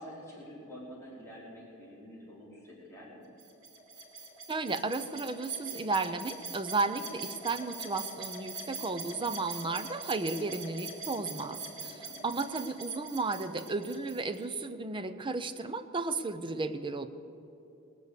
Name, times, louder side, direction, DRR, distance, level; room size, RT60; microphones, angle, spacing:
voice 1, 0.0-3.2 11.8-12.3, equal, 15° left, -6 dB, 3.2 m, -48 dB
sound 1, 3.4-14.4, right 3 dB, 70° right, 2.7 m, -43 dB
voice 2, 4.5-17.1, right 3 dB, 20° right, 10 dB, 0.5 m, -34 dB
19.5 x 6.7 x 8.1 m, 2.7 s
head